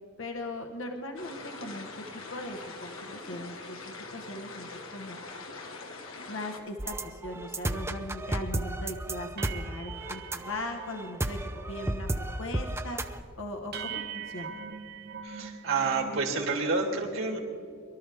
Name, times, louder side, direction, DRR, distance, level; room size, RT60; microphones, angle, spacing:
voice 1, 0.2-5.2 6.3-11.4 11.7-13.0 13.4-14.6, left 1 dB, 65° left, 3 dB, 1.3 m, -39 dB
sound 1, 1.2-6.6, left 3 dB, 80° left, 1.9 m, -43 dB
sound 2, 6.8-13.2, right 1 dB, 10° right, 0.6 m, -33 dB
sound 3, 8.3-8.6 8.9-9.0 9.4-11.2 11.5-11.9 12.2-12.6 13.1-13.2 13.7-16.3, right 6 dB, 50° right, 1.4 m, -42 dB
voice 2, 15.2-17.4, right 4 dB, 70° right, 1 dB, 2.7 m, -29 dB
23.0 x 13.0 x 3.5 m, 2.5 s
head